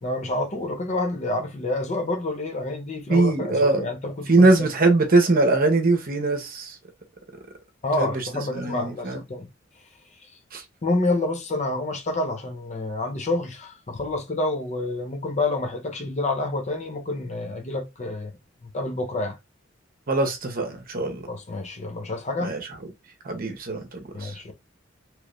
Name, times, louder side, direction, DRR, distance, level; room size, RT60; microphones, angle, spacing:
voice 1, 0.0-4.7 7.8-9.5 10.8-18.3 18.7-19.4 21.3-22.5 24.1-24.5, left 2 dB, 35° left, 0.6 m, -28 dB
voice 2, 3.1-3.9 4.3-6.7 8.0-8.2 8.5-9.2 10.5-10.6 20.1-21.2 22.4-22.6 23.2-23.9 24.2-24.3, right 2 dB, 45° right, 0.8 m, -21 dB
3.0 x 2.6 x 3.1 m
head